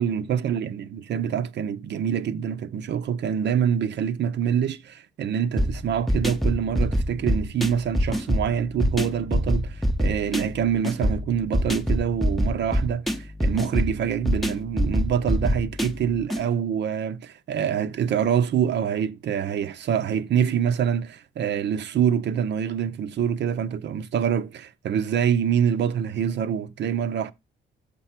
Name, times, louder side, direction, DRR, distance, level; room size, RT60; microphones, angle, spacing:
voice 1, 0.0-27.3, right 8 dB, 60° right, 0.7 m, -25 dB
sound 1, 5.6-16.4, equal, ahead, 0.7 m, -25 dB
6.8 x 5.2 x 5.8 m
cardioid pair, 90°, 20 cm